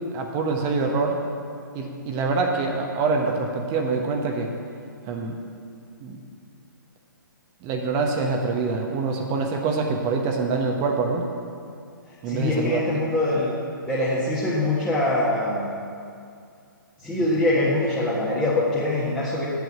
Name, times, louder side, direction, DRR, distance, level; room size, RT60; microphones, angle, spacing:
voice 1, 0.1-1.2 1.7-4.5 5.0-5.4 6.0-6.2 7.6-11.3 12.2-12.8, right 4 dB, 25° right, 2 dB, 1.0 m, -25 dB
voice 2, 12.3-13.5 13.9-15.7 17.0-19.5, left 1 dB, 5° left, -10 dB, 1.5 m, -23 dB
8.3 x 7.6 x 7.4 m, 2.4 s
figure-of-eight pair, 130°, 11 cm